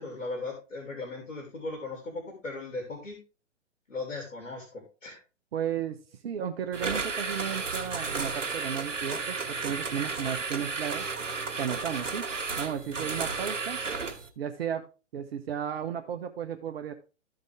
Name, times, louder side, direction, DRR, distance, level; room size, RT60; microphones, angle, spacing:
voice 1, 0.0-3.2 3.9-5.2 12.9-13.2, left 3 dB, 75° left, 2 dB, 3.2 m, -38 dB
voice 2, 5.5-6.0 6.2-11.1 11.6-12.2 12.6-13.8 14.4-14.8 15.1-16.9, right 8 dB, 50° right, 5 dB, 1.0 m, -34 dB
sound 1, 6.7-14.3, right 4 dB, 75° right, 1.8 m, -33 dB
14.0 x 5.2 x 3.5 m, 0.32 s
figure-of-eight pair, 125°, 38 cm